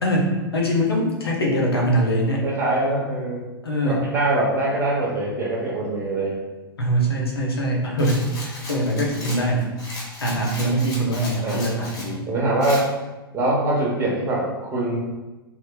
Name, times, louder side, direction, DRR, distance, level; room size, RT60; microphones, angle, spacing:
voice 1, 0.0-2.4 3.6-4.0 6.8-9.7 10.2-12.3, right 1 dB, 80° left, -2 dB, 0.8 m, -23 dB
voice 2, 2.4-3.4 3.8-6.4 11.4-11.6 12.3-12.9 13.3-15.0, right 1 dB, 20° right, -3 dB, 0.9 m, -23 dB
Rattle, 8.0-12.1 12.6-12.8, left 1 dB, 25° left, 1.0 m, -36 dB
2.9 x 2.1 x 3.7 m, 1.1 s
figure-of-eight pair, 110°, 13 cm